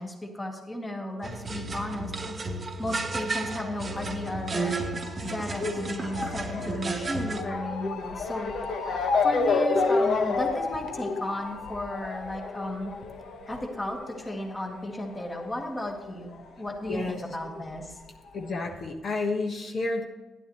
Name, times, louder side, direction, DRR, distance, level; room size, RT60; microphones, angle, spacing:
voice 1, 0.0-2.4 2.8-4.8 5.2-8.5 8.8-12.9 13.5-18.0, left 1 dB, 15° left, 2 dB, 1.7 m, -34 dB
sound 1, 1.2-7.4, right 3 dB, 30° right, 1.0 m, -33 dB
Motor vehicle (road) / Siren, 3.5-16.5 16.7-17.9 18.6-18.7 18.9-19.0, left 4 dB, 70° left, 1.1 m, -30 dB
voice 2, 16.9-17.2 18.3-20.0, left 3 dB, 50° left, 2 dB, 1.4 m, -30 dB
12.5 x 11.0 x 3.2 m, 1.2 s
cardioid pair, 125°, 0 cm